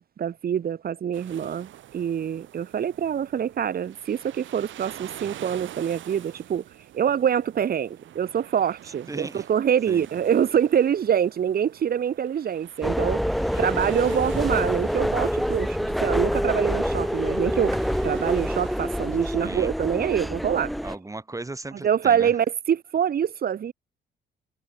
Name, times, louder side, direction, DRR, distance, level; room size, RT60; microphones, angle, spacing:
voice 1, 0.0-6.6 6.9-13.2 13.6-17.8 18.0-20.7 21.8-23.7, right 8 dB, 50° right, 1.1 m, -25 dB
sound 1, 1.1-19.4, right 12 dB, 75° right, 1.8 m, -46 dB
voice 2, 9.1-9.5 9.9-10.1 13.5-13.8 19.4-19.7 20.8-22.3, right 2 dB, 15° right, 2.1 m, -37 dB
sound 2, 12.8-21.0, equal, ahead, 0.4 m, -26 dB
cardioid pair, 90°, 20 cm